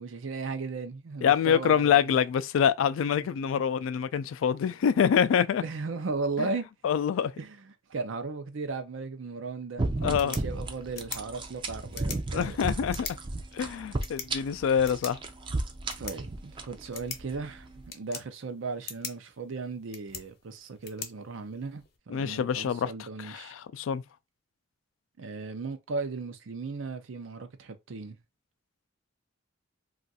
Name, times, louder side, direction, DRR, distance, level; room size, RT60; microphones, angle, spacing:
voice 1, 0.0-2.1 3.6-3.7 5.6-6.6 7.4-7.6 7.9-12.6 16.0-23.5 25.2-28.2, right 4 dB, 80° right, 0.6 m, -36 dB
voice 2, 1.2-5.6 6.4-6.5 6.8-7.3 10.0-10.4 12.3-13.1 13.5-15.2 22.1-22.9 23.2-24.0, left 8 dB, 85° left, 0.3 m, -25 dB
sound 1, 9.8-17.9, right 2 dB, 25° right, 0.4 m, -34 dB
sound 2, 10.0-22.0, left 7 dB, 55° left, 0.7 m, -45 dB
2.4 x 2.4 x 4.0 m
head